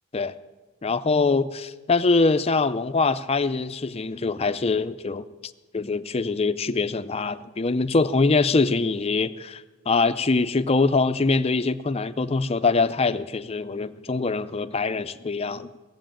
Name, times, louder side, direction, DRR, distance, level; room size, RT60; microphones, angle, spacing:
voice 1, 0.8-5.3 5.7-15.7, left 3 dB, 30° left, 12 dB, 0.5 m, -23 dB
16.5 x 7.8 x 9.0 m, 1.2 s
head